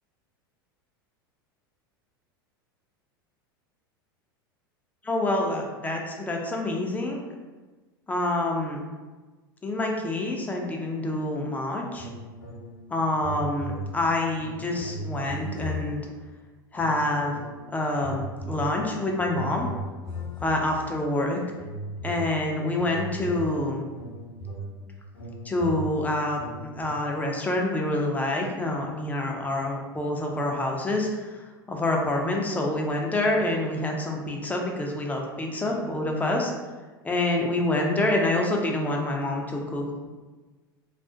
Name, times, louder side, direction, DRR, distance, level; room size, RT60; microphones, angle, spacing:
voice 1, 5.0-7.2 8.1-8.8 9.6-12.1 12.9-16.0 16.7-17.4 17.7-19.7 20.4-21.4 22.0-23.8 25.4-36.5 37.0-40.1, left 2 dB, 15° left, 0 dB, 0.4 m, -27 dB
sound 1, 11.9-12.9 13.1-16.2 16.7-17.6 17.9-21.0 21.5-26.9, right 1 dB, 65° left, 0.9 m, -37 dB
2.3 x 2.0 x 2.6 m, 1.3 s
hypercardioid pair, 90°, 12 cm